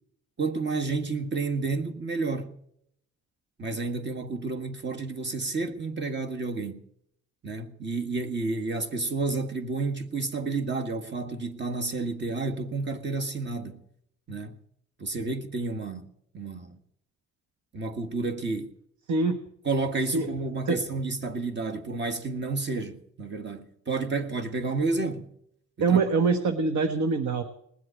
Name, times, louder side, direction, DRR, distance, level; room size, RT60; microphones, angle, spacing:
voice 1, 0.4-2.6 3.6-6.8 7.4-13.8 14.3-14.6 15.0-16.1 16.3-16.8 17.7-18.7 19.7-25.3 25.9-26.0, right 3 dB, 35° right, 1.7 m, -30 dB
voice 2, 19.1-19.4 20.1-20.3 20.7-20.8 25.8-27.4, right 4 dB, 70° right, 1.3 m, -24 dB
20.0 x 7.8 x 8.8 m
cardioid pair, 90°, 30 cm